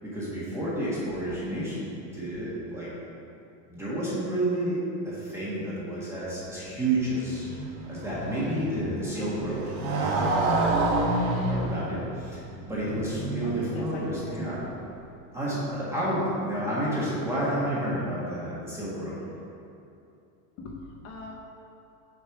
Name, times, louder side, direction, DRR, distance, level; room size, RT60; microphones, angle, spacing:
voice 1, 0.0-2.9 3.7-7.6 7.9-11.1 11.5-14.6 15.3-19.2, right 1 dB, 5° right, -9 dB, 1.5 m, -30 dB
voice 2, 0.7-1.1 13.4-14.7 20.6-21.3, left 3 dB, 40° left, -1 dB, 0.7 m, -42 dB
Motorcycle, 6.6-14.8, right 2 dB, 80° right, 1.4 m, -30 dB
6.7 x 5.3 x 5.9 m, 2.7 s
cardioid pair, 175°, 41 cm